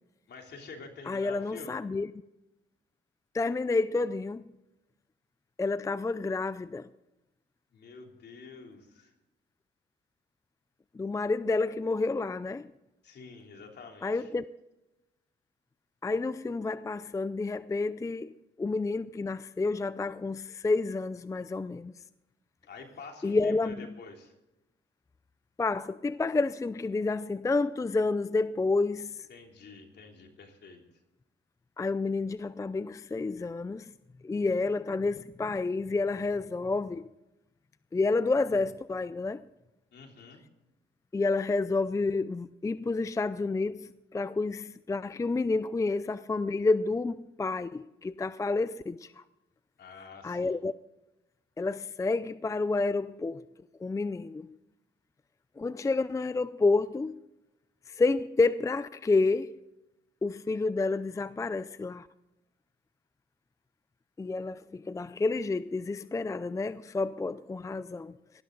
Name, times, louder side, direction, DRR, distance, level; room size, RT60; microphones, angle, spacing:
voice 1, 0.3-1.8 7.7-9.1 13.0-14.3 22.6-24.3 29.3-30.8 39.9-40.4 49.8-50.6, left 4 dB, 60° left, 3.2 m, -48 dB
voice 2, 1.1-2.1 3.3-4.5 5.6-6.9 10.9-12.7 14.0-14.5 16.0-18.3 18.6-21.9 23.2-23.9 25.6-29.3 31.8-33.9 34.2-37.0 37.9-39.4 41.1-49.2 50.2-50.7 51.6-53.4 53.8-54.5 55.6-57.2 57.9-59.6 60.2-62.1 64.2-68.1, left 3 dB, 15° left, 0.4 m, -29 dB
18.5 x 13.0 x 3.9 m
cardioid pair, 90°, 19 cm